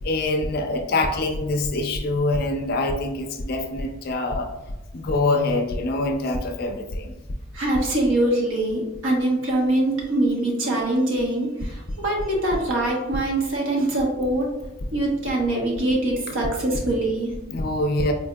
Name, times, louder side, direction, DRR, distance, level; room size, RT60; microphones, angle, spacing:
voice 1, 0.0-4.5 4.9-7.1 17.5-18.1, left 2 dB, 50° left, 5 dB, 0.4 m, -24 dB
voice 2, 7.5-14.5 14.9-17.3, right 1 dB, 75° right, -2 dB, 0.9 m, -23 dB
4.2 x 2.6 x 2.2 m, 1.0 s
head